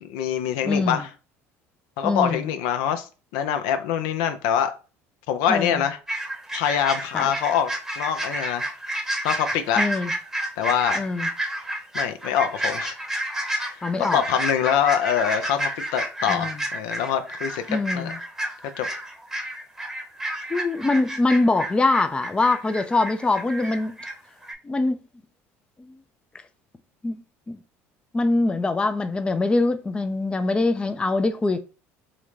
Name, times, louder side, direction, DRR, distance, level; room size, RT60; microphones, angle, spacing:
voice 1, 0.0-1.1 2.0-3.1 3.3-4.7 5.3-6.0 6.5-7.7 8.0-8.7 9.2-9.8 10.6-11.1 11.9-12.9 13.7-13.8 14.1-18.1 18.8-18.9, left 9 dB, 80° left, 0.4 m, -24 dB
voice 2, 0.6-1.0 2.0-2.5 5.5-5.8 7.1-7.3 9.8-10.1 11.0-11.3 13.8-14.2 16.3-16.6 17.7-18.2 20.5-24.0 24.6-25.0 25.8-26.0 27.0-27.2 27.5-27.6 28.1-31.6, left 3 dB, 15° left, 0.4 m, -23 dB
sound 1, 6.1-24.1 24.4-24.5, right 1 dB, 5° right, 0.8 m, -30 dB
3.7 x 2.2 x 3.1 m
supercardioid pair, 85°, 7 cm